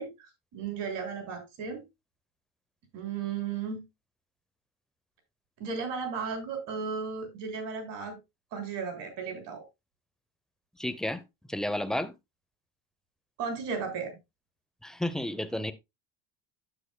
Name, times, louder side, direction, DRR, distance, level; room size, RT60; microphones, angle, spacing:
voice 1, 0.0-1.8 2.9-3.8 5.6-8.2 8.5-9.6 13.4-14.2, right 5 dB, 70° right, 3.5 m, -35 dB
voice 2, 10.8-11.2 11.5-12.1 14.8-15.7, left 1 dB, ahead, 0.6 m, -31 dB
9.7 x 7.8 x 2.2 m
supercardioid pair, 95°, 44 cm